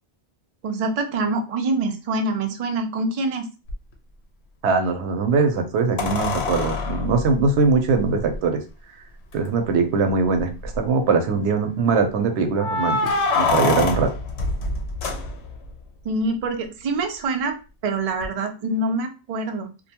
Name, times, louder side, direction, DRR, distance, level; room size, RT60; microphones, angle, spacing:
voice 1, 0.6-3.5 16.0-17.6 17.8-19.7, right 2 dB, 60° right, 5 dB, 0.3 m, -25 dB
sound 1, 3.7-3.8 6.0-8.4 9.3-9.4 9.7-9.8 10.4-10.8 12.5-15.7 18.2-18.3, left 3 dB, 80° left, 0.9 m, -25 dB
voice 2, 4.6-8.6 9.3-10.5 10.8-14.1, right 4 dB, 80° right, 6 dB, 0.9 m, -21 dB
2.6 x 2.2 x 2.8 m, 0.32 s
omnidirectional pair, 1.1 m